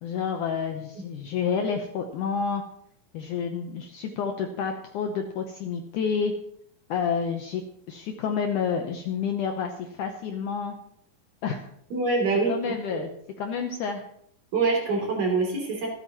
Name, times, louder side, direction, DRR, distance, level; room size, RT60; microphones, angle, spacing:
voice 1, 0.0-2.6 3.1-6.3 6.9-7.6 7.9-10.8 11.4-11.6 12.5-13.1 13.4-14.0, left 6 dB, 75° left, 4 dB, 1.9 m, -29 dB
voice 2, 11.9-13.0 14.5-15.9, right 3 dB, 50° right, -1 dB, 4.2 m, -25 dB
26.0 x 8.8 x 3.0 m, 0.71 s
omnidirectional pair, 4.4 m